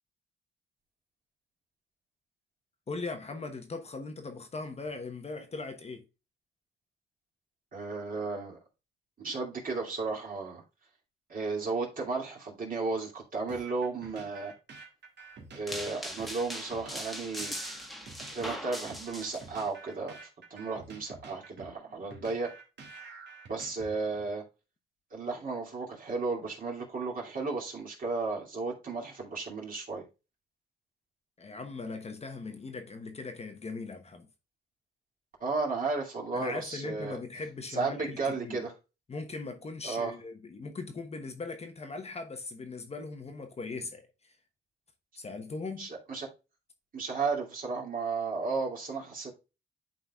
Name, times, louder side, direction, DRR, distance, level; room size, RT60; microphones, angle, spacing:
voice 1, 2.9-6.0 31.4-34.3 36.3-38.6 39.1-44.3 45.2-45.9, left 3 dB, 30° left, 1.0 m, -39 dB
voice 2, 7.7-8.6 9.2-10.6 11.3-14.5 15.5-17.5 18.3-22.5 23.5-24.4 25.1-30.0 35.4-37.2 37.7-38.7 39.8-40.1 45.8-46.3 46.9-49.3, right 4 dB, 45° right, 2.5 m, -34 dB
sound 1, 13.5-24.3, right 4 dB, 60° right, 1.9 m, -49 dB
sound 2, 15.7-19.7, equal, ahead, 1.2 m, -40 dB
11.0 x 3.9 x 2.3 m
cardioid pair, 90°, 20 cm